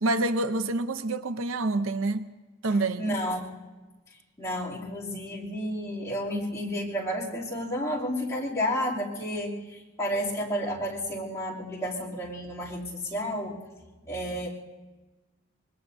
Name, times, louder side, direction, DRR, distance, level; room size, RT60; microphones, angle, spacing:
voice 1, 0.0-2.3 2.6-3.1, right 2 dB, 90° right, 0.7 m, -27 dB
voice 2, 3.0-3.5 4.4-13.6 14.1-14.5, equal, 15° left, 2.9 m, -31 dB
24.5 x 21.5 x 2.7 m
head